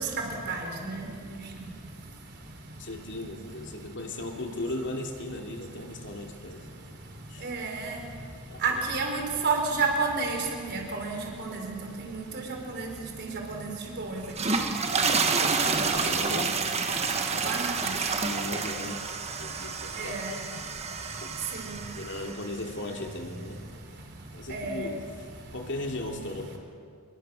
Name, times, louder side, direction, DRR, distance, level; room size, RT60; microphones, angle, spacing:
voice 1, 0.0-3.2 3.6-4.3 5.5-16.3 16.9-18.5 19.2-22.2 23.5-24.9 25.3-25.6, right 4 dB, 50° right, 2 dB, 4.2 m, -34 dB
voice 2, 2.8-6.6 7.3-7.5 8.5-8.8 15.3-16.6 18.2-19.1 19.4-20.1 21.2-21.3 21.9-23.6 24.3-25.1 25.5-26.6, left 1 dB, 55° left, 2 dB, 2.9 m, -37 dB
sound 1, 14.2-22.5, right 4 dB, 30° right, 1.4 m, -29 dB
28.0 x 22.5 x 6.5 m, 2.1 s
head